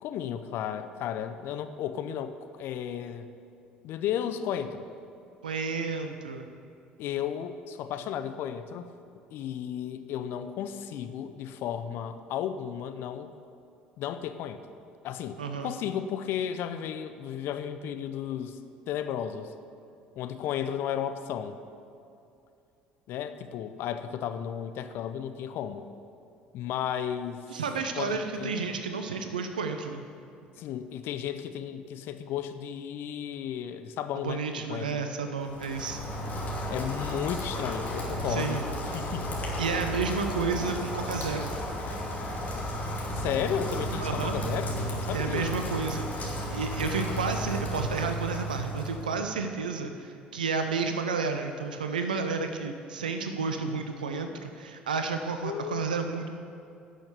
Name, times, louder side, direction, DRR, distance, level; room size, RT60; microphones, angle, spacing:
voice 1, 0.0-3.3 3.8-4.9 7.0-8.9 9.3-13.3 14.0-14.6 15.0-15.4 15.6-18.6 18.9-19.5 20.2-21.6 23.1-25.8 26.5-27.5 28.0-28.8 30.6-34.4 34.7-35.1 36.7-38.6 38.9-39.3 43.1-45.5 55.4-55.9, left 9 dB, 60° left, 10 dB, 0.6 m, -34 dB
voice 2, 5.4-6.5 15.4-15.7 27.5-30.0 34.1-36.0 38.3-38.6 39.6-41.6 44.0-44.4 45.1-56.3, right 5 dB, 85° right, 6 dB, 0.6 m, -31 dB
Rain, 35.4-49.2, equal, 40° left, 2.6 m, -33 dB
11.5 x 6.5 x 6.7 m, 2.6 s
figure-of-eight pair, 60°, 4 cm